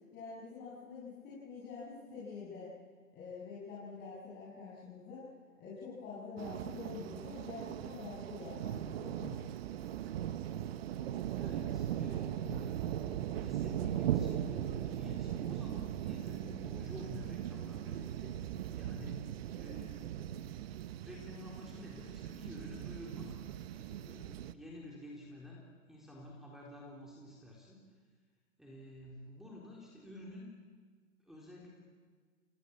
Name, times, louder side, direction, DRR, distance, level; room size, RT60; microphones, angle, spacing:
voice 1, 0.1-2.7 3.1-5.2 5.6-9.4, left 5 dB, 25° left, -8 dB, 7.8 m, -46 dB
sound 1, 6.4-24.5, right 11 dB, 45° right, 1.2 m, -39 dB
voice 2, 11.3-12.8 13.3-20.0 21.0-23.4 23.8-25.6 25.9-27.8 28.6-30.5 31.2-31.8, left 1 dB, ahead, -3 dB, 3.9 m, -50 dB
27.5 x 18.5 x 8.7 m, 1.5 s
hypercardioid pair, 130°, 41 cm